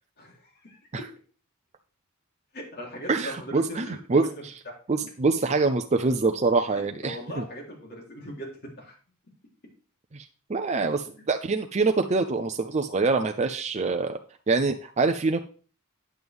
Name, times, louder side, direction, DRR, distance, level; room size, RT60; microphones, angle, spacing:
voice 1, 0.2-0.8 2.5-4.3 4.7-4.8 6.7-8.5 8.8-8.9 11.2-11.3, equal, 50° left, -2 dB, 3.6 m, -40 dB
voice 2, 3.1-4.5 4.9-7.4 10.1-14.2 14.5-15.4, right 3 dB, 35° right, 5 dB, 0.5 m, -25 dB
9.4 x 8.0 x 3.6 m, 0.40 s
head